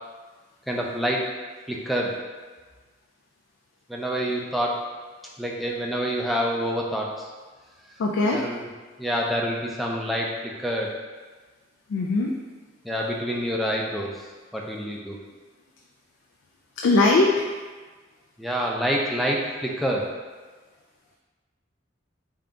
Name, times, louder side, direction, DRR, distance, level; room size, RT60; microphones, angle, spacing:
voice 1, 0.7-1.3 1.7-2.1 3.9-4.8 5.4-7.3 8.3-8.6 9.0-10.9 12.8-14.1 14.5-15.2 18.4-20.1, equal, ahead, -2 dB, 0.3 m, -27 dB
voice 2, 8.0-8.4 11.9-12.3 16.8-17.4, left 2 dB, 85° left, 0 dB, 0.3 m, -20 dB
3.6 x 2.2 x 3.8 m, 1.4 s
head